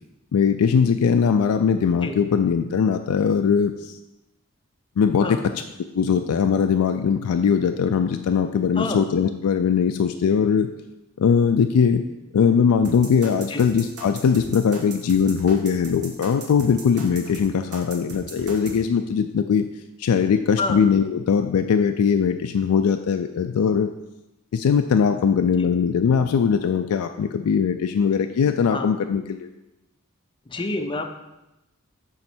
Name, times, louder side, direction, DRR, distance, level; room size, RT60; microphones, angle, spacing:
voice 1, 0.3-3.9 5.0-5.4 5.9-10.7 11.2-12.0 12.3-19.7 20.0-23.9 24.5-29.5, left 6 dB, 85° left, 7 dB, 0.3 m, -20 dB
voice 2, 8.8-9.1 13.5-13.6 20.6-20.8 25.6-25.7 28.7-28.9 30.5-31.1, left 2 dB, 20° left, 5 dB, 0.5 m, -28 dB
sound 1, 12.8-18.8, right 3 dB, 75° right, 1.3 m, -38 dB
7.0 x 3.2 x 6.0 m, 0.96 s
head